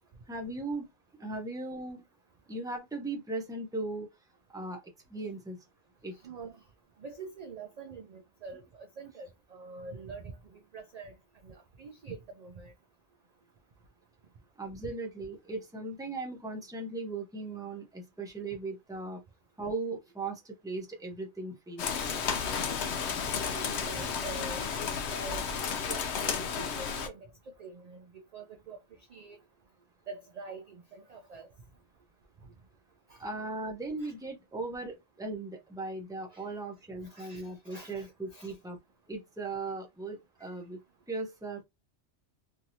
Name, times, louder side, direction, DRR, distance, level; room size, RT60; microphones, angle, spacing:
voice 1, 0.3-0.9 1.2-2.0 2.5-4.1 4.5-4.8 5.1-5.6 6.0-6.1 14.6-19.2 19.6-21.9 33.2-38.8 39.1-40.8 41.1-41.6, right 2 dB, 5° right, 0.6 m, -38 dB
voice 2, 6.1-6.6 7.0-11.1 11.4-12.7 14.8-14.9 23.4-25.5 25.9-28.8 29.1-29.4 30.1-31.5 33.1-33.2 34.0-34.1 36.3-36.4 37.0-38.5, right 3 dB, 55° right, 0.4 m, -45 dB
Rain, 21.8-27.1, left 6 dB, 70° left, 0.8 m, -32 dB
3.0 x 2.7 x 2.7 m
omnidirectional pair, 1.2 m